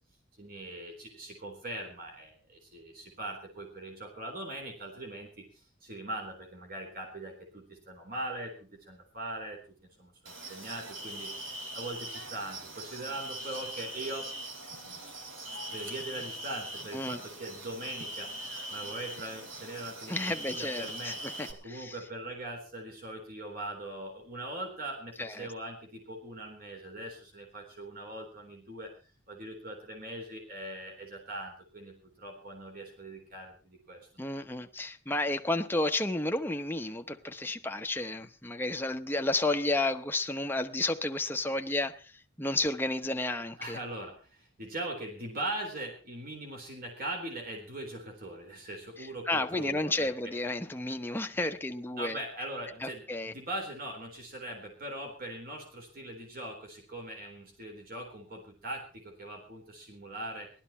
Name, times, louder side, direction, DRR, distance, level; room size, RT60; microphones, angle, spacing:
voice 1, 0.4-9.6 10.0-14.3 15.7-18.3 18.7-21.2 21.6-28.9 29.3-34.1 43.6-50.3 51.9-60.5, right 1 dB, 50° right, 3.8 m, -41 dB
sound 1, 10.2-21.5, right 1 dB, 85° right, 3.3 m, -41 dB
voice 2, 20.1-21.9 25.2-25.5 34.2-42.0 42.4-43.8 49.3-52.2 52.8-53.3, left 2 dB, 10° left, 0.9 m, -32 dB
18.5 x 12.5 x 4.3 m
head